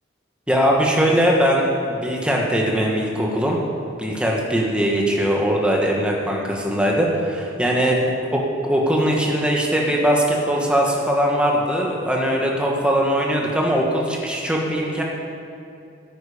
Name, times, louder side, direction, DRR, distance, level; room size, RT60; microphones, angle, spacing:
voice 1, 0.5-3.6 4.0-8.0 8.3-15.0, equal, 5° right, -2 dB, 1.4 m, -20 dB
13.0 x 10.5 x 5.1 m, 2.5 s
head